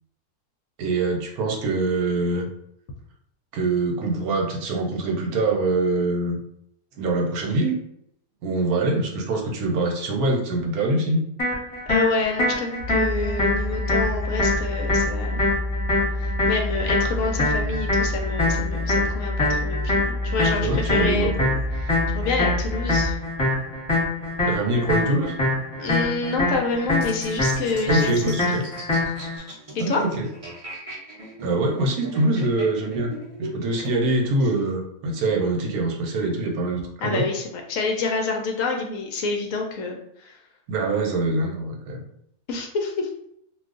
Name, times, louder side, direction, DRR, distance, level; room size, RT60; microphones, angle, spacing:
voice 1, 0.8-2.5 3.5-6.4 7.0-7.8 8.4-11.2 20.6-21.5 24.4-25.3 27.9-28.6 29.8-30.3 31.4-33.1 33.4-37.3 40.7-42.0, right 2 dB, 80° right, 1 dB, 1.1 m, -24 dB
sound 1, 11.4-29.4, left 2 dB, 25° left, 1.0 m, -25 dB
voice 2, 11.9-15.5 16.1-21.3 21.8-23.2 25.8-28.6 29.7-30.0 33.8-33.9 37.0-40.4 42.5-43.1, left 3 dB, 70° left, 2 dB, 0.9 m, -28 dB
sound 2, 12.8-23.2, left 1 dB, 40° left, 0.7 m, -28 dB
sound 3, 27.0-33.9, right 2 dB, 40° right, 0.5 m, -39 dB
2.5 x 2.3 x 3.7 m, 0.74 s
omnidirectional pair, 1.6 m